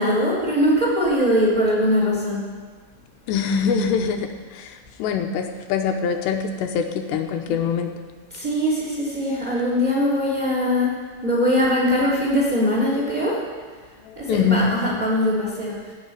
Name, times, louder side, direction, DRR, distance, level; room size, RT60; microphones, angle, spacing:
voice 1, 0.0-2.4 8.3-10.9 11.2-13.3 14.2-15.7, equal, 20° right, -5 dB, 3.4 m, -21 dB
voice 2, 3.3-7.9 14.0-14.7, left 6 dB, 75° left, 5 dB, 2.7 m, -24 dB
17.0 x 6.5 x 9.3 m, 1.5 s
omnidirectional pair, 5.6 m